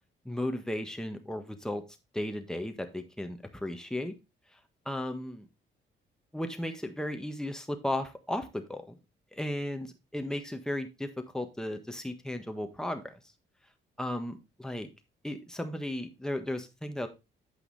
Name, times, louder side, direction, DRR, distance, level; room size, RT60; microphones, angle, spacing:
voice 1, 0.2-1.8 2.1-4.1 4.8-5.5 6.3-9.0 9.3-13.2 14.0-14.9 15.2-17.1, left 1 dB, 5° left, 6 dB, 1.4 m, -35 dB
8.5 x 5.5 x 4.1 m, 0.26 s
cardioid pair, 90°, 20 cm